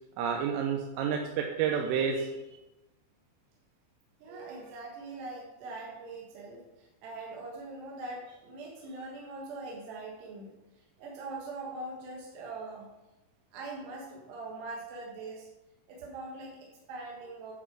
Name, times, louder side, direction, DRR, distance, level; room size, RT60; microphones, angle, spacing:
voice 1, 0.2-2.4 4.3-4.6, right 7 dB, 90° right, 1 dB, 3.3 m, -30 dB
voice 2, 4.2-10.5 11.0-12.9 13.5-15.5 15.9-17.5, right 2 dB, 70° right, -2 dB, 3.0 m, -42 dB
10.0 x 6.1 x 4.6 m, 1.0 s
omnidirectional pair, 5.6 m